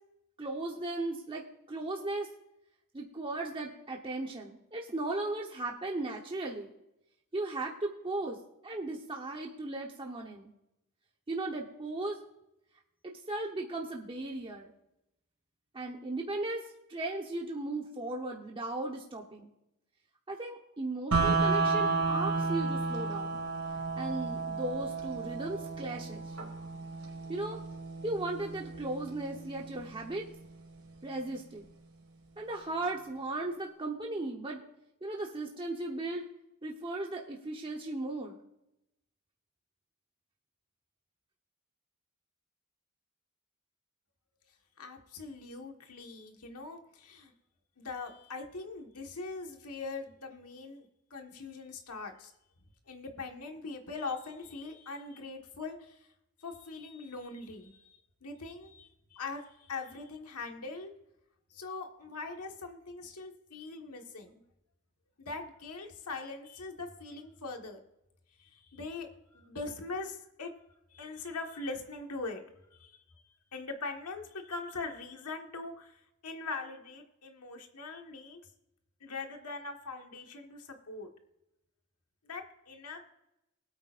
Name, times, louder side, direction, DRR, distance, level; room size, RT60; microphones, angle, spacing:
voice 1, 0.4-2.3 2.9-6.7 7.3-8.4 8.6-10.5 11.3-12.2 13.0-14.7 15.7-19.5 20.3-23.4 24.0-26.4 27.3-27.6 28.0-30.3 31.0-31.7 32.4-34.6 35.0-36.2 36.6-38.4, right 2 dB, 25° right, 0 dB, 1.0 m, -36 dB
sound 1, 21.1-31.1, right 4 dB, 70° right, 2.6 m, -33 dB
voice 2, 44.8-47.3 47.8-52.3 52.9-56.1 56.4-60.9 61.5-64.3 65.2-67.8 68.4-70.5 70.9-72.4 72.7-73.0 73.2-78.4 79.0-81.1 82.2-83.1, left 3 dB, 85° left, 4 dB, 1.5 m, -42 dB
20.5 x 8.8 x 2.5 m, 0.87 s
head